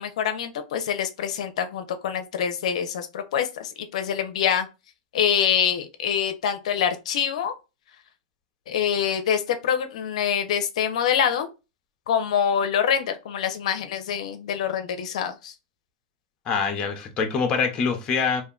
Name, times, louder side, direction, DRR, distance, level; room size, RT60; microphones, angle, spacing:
voice 1, 0.0-4.7 5.1-7.5 8.7-11.5 12.1-15.5, left 8 dB, 80° left, 0.5 m, -25 dB
voice 2, 16.5-18.4, left 5 dB, 25° left, 0.6 m, -24 dB
2.5 x 2.1 x 3.6 m
supercardioid pair, 145°, 4 cm